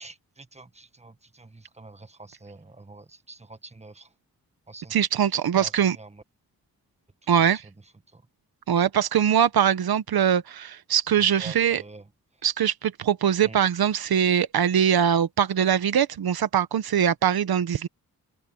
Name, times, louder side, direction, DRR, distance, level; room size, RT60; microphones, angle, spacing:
voice 1, 0.0-4.1 4.7-5.0 5.6-5.7 6.0-6.1 11.4-12.0 13.4-13.6, right 2 dB, 20° right, 1.6 m, -45 dB
voice 2, 4.9-6.0 7.3-7.6 8.7-11.8 12.4-17.9, right 8 dB, 80° right, 1.1 m, -22 dB
open air
cardioid pair, 55°, 36 cm